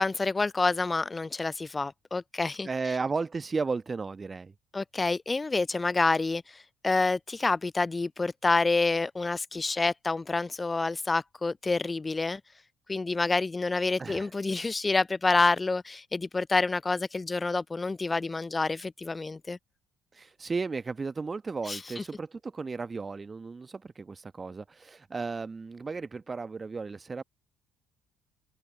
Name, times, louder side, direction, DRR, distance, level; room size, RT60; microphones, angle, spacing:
voice 1, 0.0-3.0 4.7-12.4 12.9-19.6 21.6-22.0, left 3 dB, 20° left, 0.4 m, -28 dB
voice 2, 2.6-4.5 14.0-14.3 20.1-27.2, right 4 dB, 25° right, 1.2 m, -34 dB
open air
figure-of-eight pair, 50°, 0 cm